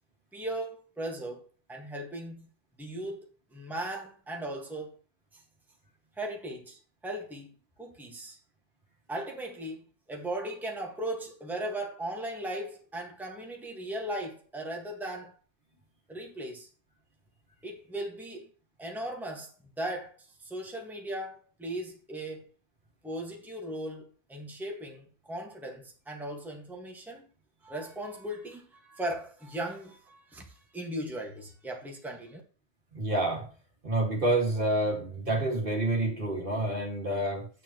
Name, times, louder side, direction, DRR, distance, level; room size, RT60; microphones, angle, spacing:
voice 1, 0.3-2.5 2.8-5.0 5.3-5.4 6.2-8.4 9.1-15.4 16.1-16.7 17.6-18.5 18.8-22.5 23.0-27.3 27.6-32.4, right 1 dB, ahead, 1.5 m, -38 dB
voice 2, 32.9-33.5 33.8-37.5, right 1 dB, 50° right, 2.2 m, -28 dB
9.3 x 8.6 x 3.0 m
omnidirectional pair, 1.2 m